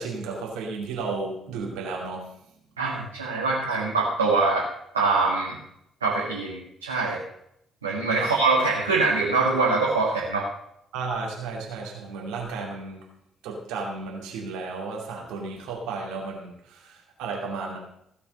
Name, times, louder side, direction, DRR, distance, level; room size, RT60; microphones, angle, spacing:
voice 1, 0.0-2.3 8.2-8.3 10.9-13.1 13.4-17.8, right 4 dB, 70° right, 0 dB, 2.6 m, -33 dB
voice 2, 2.8-4.6 4.9-5.5 6.0-7.2 7.8-10.5, right 3 dB, 85° right, -3 dB, 1.8 m, -23 dB
16.0 x 6.8 x 6.6 m, 0.75 s
figure-of-eight pair, 45°, 0 cm